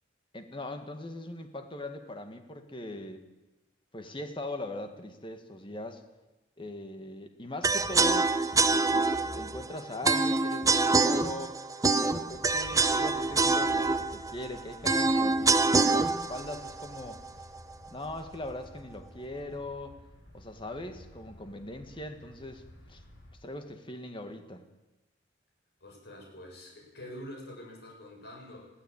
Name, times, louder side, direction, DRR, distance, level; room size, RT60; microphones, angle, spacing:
voice 1, 0.3-3.3 3.9-6.0 6.6-11.5 11.9-17.2 17.9-20.0 20.3-22.6 22.9-23.0 23.4-24.6, left 1 dB, 30° left, 6 dB, 1.9 m, -40 dB
sound 1, 7.6-17.7, right 3 dB, 20° right, 0.7 m, -26 dB
sound 2, 12.3-23.3, equal, 80° left, 7.6 m, -53 dB
voice 2, 25.8-28.7, left 1 dB, 65° left, 0 dB, 7.7 m, -46 dB
21.0 x 15.5 x 8.9 m, 1.1 s
head